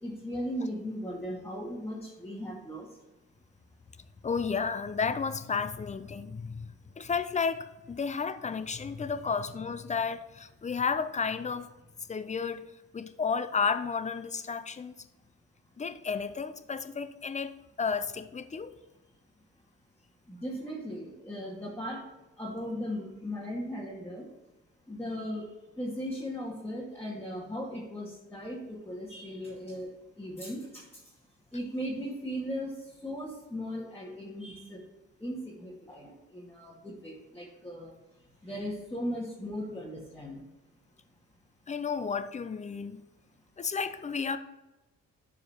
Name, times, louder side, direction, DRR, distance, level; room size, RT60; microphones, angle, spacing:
voice 1, 0.0-2.9 20.3-22.0 22.4-24.3 24.9-25.4 25.8-29.9 30.2-30.8 31.5-32.7 33.0-34.8 35.2-37.9 38.4-40.4, equal, 10° left, 2.2 m, -37 dB
voice 2, 4.2-11.7 12.1-12.7 12.9-14.9 15.8-17.5 17.8-18.7 41.7-43.0 43.6-44.4, left 5 dB, 25° left, 0.6 m, -32 dB
12.0 x 4.8 x 3.0 m
cardioid pair, 90°, 30 cm